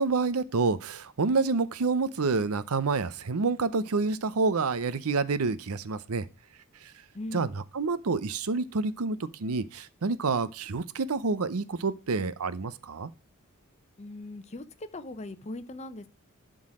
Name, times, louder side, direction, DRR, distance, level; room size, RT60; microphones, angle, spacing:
voice 1, 0.0-6.2 6.8-6.9 7.3-13.1, right 4 dB, 85° right, 0.7 m, -28 dB
voice 2, 7.1-7.5 14.0-16.1, left 2 dB, 30° left, 0.7 m, -39 dB
11.5 x 3.9 x 4.8 m
head